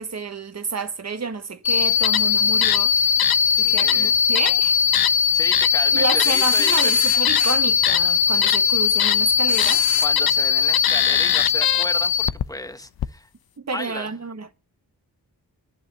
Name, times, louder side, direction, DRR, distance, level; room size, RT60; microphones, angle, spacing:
voice 1, 0.0-3.1 3.6-4.8 5.9-9.8 13.6-14.5, right 4 dB, 45° right, 1.4 m, -30 dB
sound 1, 1.6-12.5 13.0-13.1, left 8 dB, 70° left, 0.6 m, -19 dB
sound 2, 2.2-2.6 4.9-5.4 6.2-7.8 8.7-8.8 9.5-10.1, left 3 dB, 40° left, 2.0 m, -31 dB
voice 2, 3.6-4.2 5.3-7.1 10.0-13.3 13.7-14.2, left 1 dB, 10° left, 1.3 m, -33 dB
11.0 x 6.0 x 8.5 m
cardioid pair, 55°, 38 cm